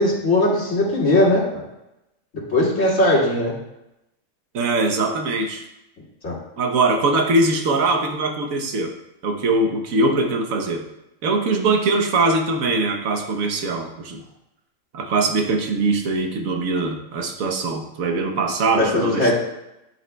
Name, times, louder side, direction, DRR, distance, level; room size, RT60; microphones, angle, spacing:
voice 1, 0.0-1.4 2.5-3.5 6.2-6.4 18.8-19.3, left 1 dB, 65° left, -6 dB, 2.6 m, -19 dB
voice 2, 4.5-5.6 6.6-8.9 9.2-10.8 11.2-14.2 14.9-19.3, right 3 dB, 85° right, 4 dB, 1.3 m, -22 dB
8.9 x 7.9 x 2.2 m, 0.90 s
omnidirectional pair, 1.4 m